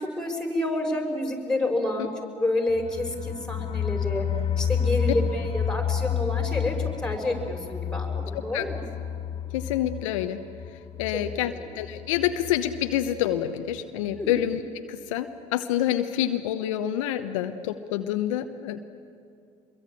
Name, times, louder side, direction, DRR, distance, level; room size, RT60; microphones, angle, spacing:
voice 1, 0.0-2.1 2.4-4.3 4.6-6.8 7.0-8.8 11.1-11.6 14.2-14.3, left 1 dB, 5° left, 3 dB, 5.8 m, -29 dB
sound 1, 2.7-13.4 13.7-13.8 14.1-14.2, left 8 dB, 35° left, 0.7 m, -30 dB
voice 2, 9.5-10.4 11.0-14.6 14.9-18.8, left 11 dB, 75° left, 8 dB, 1.0 m, -27 dB
25.0 x 22.5 x 8.9 m, 2.4 s
hypercardioid pair, 65°, 16 cm